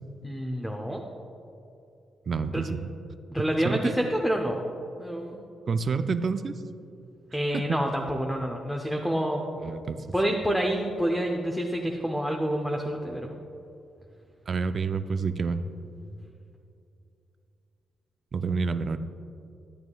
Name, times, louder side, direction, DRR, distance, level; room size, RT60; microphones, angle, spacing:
voice 1, 0.2-1.0 2.5-2.6 3.3-4.6 5.0-5.4 7.3-9.5 10.1-13.4, equal, ahead, 1 dB, 0.7 m, -28 dB
voice 2, 2.3-2.9 3.6-3.9 5.7-6.5 7.5-7.6 9.6-10.1 14.5-15.6 18.3-19.0, right 5 dB, 45° right, 10 dB, 0.4 m, -28 dB
12.0 x 9.2 x 2.3 m, 2.6 s
cardioid pair, 100°, 0 cm